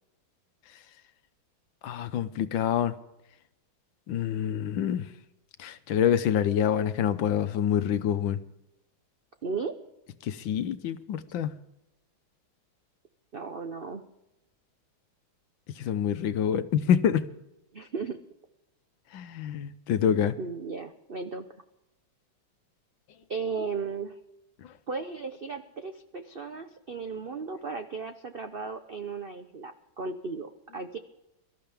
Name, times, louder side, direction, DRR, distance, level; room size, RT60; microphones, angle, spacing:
voice 1, 1.8-3.0 4.1-5.0 5.6-8.4 10.2-11.5 15.7-17.3 19.1-20.4, left 9 dB, 70° left, 1.5 m, -26 dB
voice 2, 9.4-9.7 13.3-14.0 17.7-18.2 20.4-21.5 23.3-24.2 24.9-31.0, right 4 dB, 65° right, 0.5 m, -35 dB
23.5 x 13.5 x 3.5 m
omnidirectional pair, 2.2 m